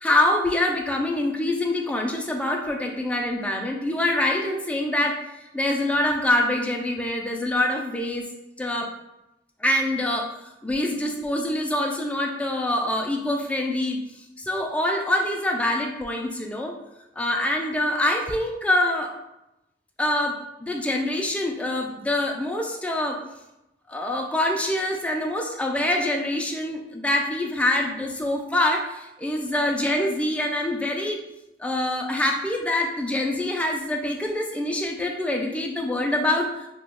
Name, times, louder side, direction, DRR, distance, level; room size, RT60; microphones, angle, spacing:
voice 1, 0.0-5.2 5.5-8.2 8.6-8.9 9.6-10.3 10.6-14.0 14.4-16.7 17.2-19.1 20.0-23.2 23.9-31.2 31.6-36.5, left 1 dB, 5° left, 1 dB, 0.3 m, -25 dB
2.9 x 2.2 x 3.4 m, 0.91 s
head